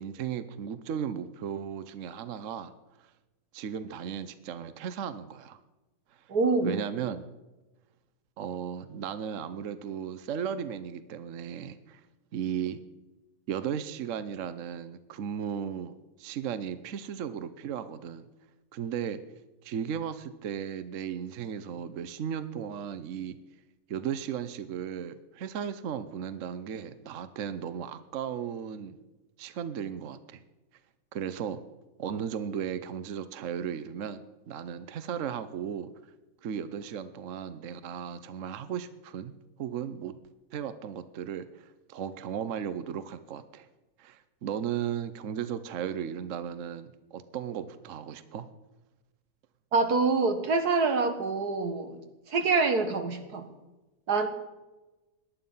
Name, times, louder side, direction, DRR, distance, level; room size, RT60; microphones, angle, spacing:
voice 1, 0.0-2.7 3.0-3.1 3.5-5.6 6.6-7.3 8.4-12.0 12.3-12.8 13.5-15.9 16.2-18.3 18.7-19.2 19.6-23.4 23.9-29.0 29.4-30.4 31.1-31.6 32.0-34.2 34.5-35.9 36.4-39.3 39.6-40.1 40.5-43.7 44.0-48.4, right 8 dB, 60° right, 12 dB, 1.0 m, -35 dB
voice 2, 6.3-6.8 49.7-52.0 52.3-53.4 54.1-54.3, right 4 dB, 80° right, 7 dB, 2.2 m, -26 dB
18.5 x 11.5 x 5.5 m, 1.1 s
omnidirectional pair, 1.6 m